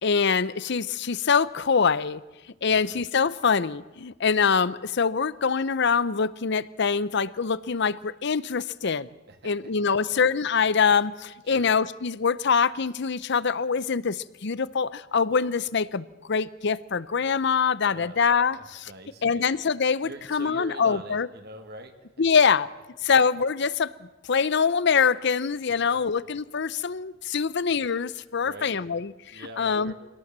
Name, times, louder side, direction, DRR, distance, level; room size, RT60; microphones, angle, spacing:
voice 1, 0.0-2.2 2.6-9.1 9.4-18.9 19.2-21.3 22.2-22.7 23.0-23.9 24.3-29.9, left 6 dB, 60° left, 18 dB, 0.7 m, -24 dB
voice 2, 2.7-3.0 9.3-9.5 9.8-9.9 11.5-11.7 17.9-18.2 18.5-19.5 20.0-21.9 25.8-26.0 28.4-28.7 29.3-29.9, right 2 dB, 55° right, 6 dB, 2.0 m, -44 dB
24.5 x 18.0 x 7.5 m, 1.1 s
head